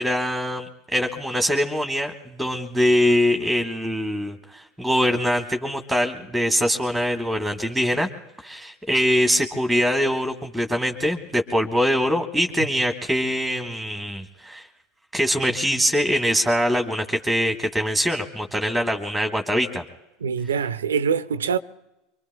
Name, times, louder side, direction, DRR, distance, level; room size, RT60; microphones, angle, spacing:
voice 1, 0.0-8.1 8.4-14.7 15.1-19.8, equal, 5° left, 1.3 m, -23 dB
voice 2, 20.2-21.6, right 6 dB, 80° right, 0.5 m, -24 dB
25.0 x 24.5 x 2.2 m
hypercardioid pair, 80°, 0 cm